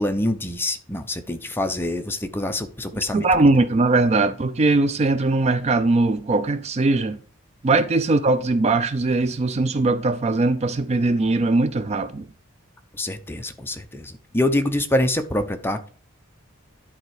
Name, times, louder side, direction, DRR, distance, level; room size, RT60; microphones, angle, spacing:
voice 1, 0.0-3.2 12.9-15.9, left 1 dB, 10° left, 0.7 m, -25 dB
voice 2, 3.1-7.2 7.6-12.2, right 2 dB, 30° right, 0.4 m, -20 dB
10.5 x 4.2 x 4.8 m
head